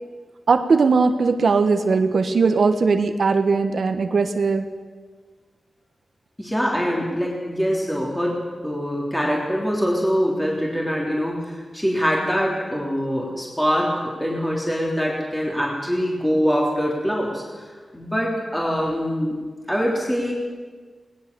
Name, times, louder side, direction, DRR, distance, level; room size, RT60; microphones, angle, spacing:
voice 1, 0.5-4.6, right 4 dB, 65° right, 8 dB, 1.2 m, -19 dB
voice 2, 6.4-17.6 17.9-19.4 19.7-20.3, equal, 5° left, -3 dB, 3.4 m, -24 dB
20.0 x 19.0 x 6.9 m, 1.5 s
wide cardioid pair, 115°, 0 cm